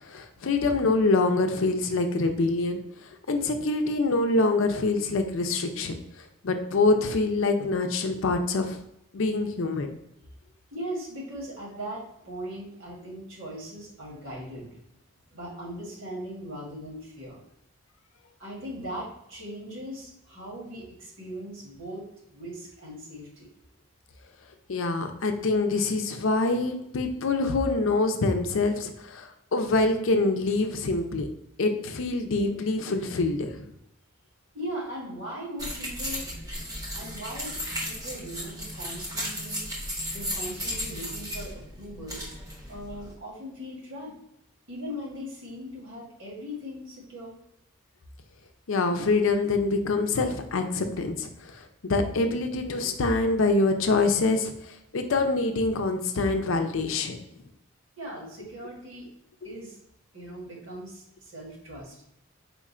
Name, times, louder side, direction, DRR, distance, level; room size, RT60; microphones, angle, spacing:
voice 1, 0.0-6.0 6.4-8.8 9.1-10.0 24.7-31.3 31.6-33.6 48.7-57.2, left 3 dB, 70° left, 6 dB, 0.5 m, -25 dB
voice 2, 10.7-14.8 15.3-17.4 18.4-23.5 34.5-36.3 36.5-36.6 36.9-39.6 40.1-42.2 42.7-44.1 44.7-47.3 58.0-59.1 59.4-59.8 60.1-62.1, equal, 65° right, -4 dB, 1.6 m, -39 dB
sound 1, 35.6-43.1, equal, 15° right, 0.8 m, -35 dB
4.3 x 2.4 x 4.2 m, 0.82 s
head